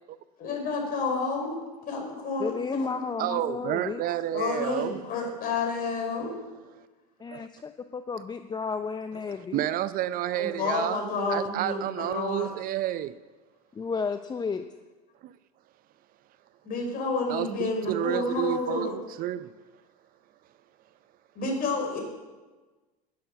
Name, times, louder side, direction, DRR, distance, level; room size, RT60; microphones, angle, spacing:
voice 1, 0.4-1.6 1.9-3.0 4.3-6.4 10.4-12.5 16.7-18.9 21.4-22.0, left 3 dB, 45° left, 5.1 m, -30 dB
voice 2, 2.4-4.0 7.2-9.7 13.7-14.7, left 5 dB, 20° left, 0.6 m, -32 dB
voice 3, 3.2-5.0 7.3-7.5 9.3-11.0 11.3-13.2 15.2-15.3 17.3-19.5, right 13 dB, 45° right, 0.6 m, -30 dB
10.5 x 8.9 x 9.1 m
hypercardioid pair, 85°, 20 cm